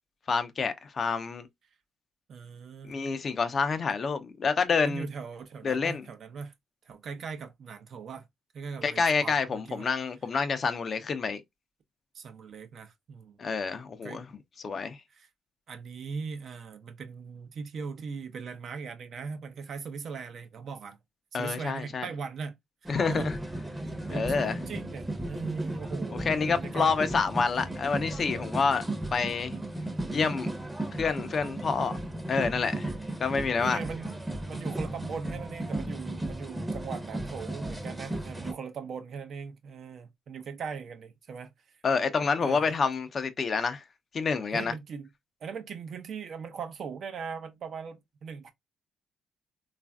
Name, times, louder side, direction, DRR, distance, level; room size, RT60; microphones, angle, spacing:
voice 1, 0.3-1.5 2.9-5.1 5.6-6.0 8.8-11.4 13.4-14.3 14.6-15.0 21.3-22.1 22.9-23.4 24.1-24.6 26.2-28.8 29.1-29.5 30.1-30.5 31.0-32.0 32.3-32.9 33.2-33.8 41.8-43.8 44.1-44.7, left 5 dB, 45° left, 0.5 m, -28 dB
voice 2, 2.3-2.9 4.8-6.5 6.8-8.2 8.5-9.9 12.1-13.4 14.0-14.2 15.1-15.3 15.7-21.0 21.3-22.5 23.1-23.3 24.1-26.9 33.6-34.1 34.5-41.5 42.4-42.7 44.5-45.1 45.4-48.5, right 5 dB, 60° right, 0.6 m, -39 dB
sound 1, 22.9-38.5, right 1 dB, 10° right, 0.7 m, -35 dB
3.2 x 2.4 x 2.2 m
cardioid pair, 90°, 0 cm